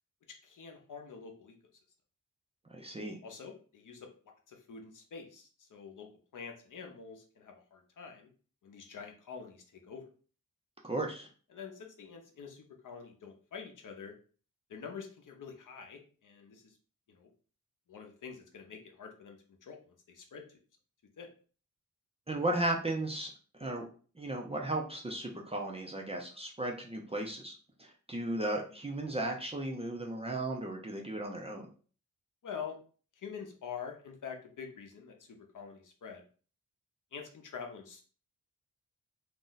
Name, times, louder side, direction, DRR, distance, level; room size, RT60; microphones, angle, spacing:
voice 1, 0.4-1.5 3.2-4.1 4.5-8.3 8.6-10.1 11.5-14.1 14.7-16.8 17.1-17.3 17.9-20.4 21.2-21.3 32.4-32.8 33.2-36.2 37.1-38.0, left 6 dB, 65° left, 3 dB, 0.6 m, -46 dB
voice 2, 2.7-3.2 10.8-11.3 22.3-23.3 23.6-23.8 24.2-27.5 27.8-31.7, right 1 dB, 20° right, 0 dB, 0.4 m, -35 dB
2.5 x 2.1 x 3.8 m, 0.40 s
wide cardioid pair, 170°, 33 cm